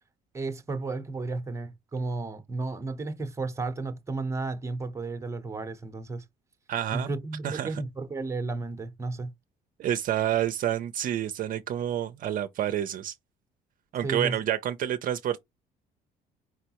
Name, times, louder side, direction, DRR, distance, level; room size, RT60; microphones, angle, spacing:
voice 1, 0.3-6.2 6.9-9.3 14.0-14.4, right 3 dB, 15° right, 0.8 m, -33 dB
voice 2, 6.7-7.1 7.4-7.7 9.8-13.1 13.9-15.4, right 11 dB, 55° right, 0.5 m, -28 dB
4.8 x 3.3 x 2.9 m
cardioid pair, 110°, 17 cm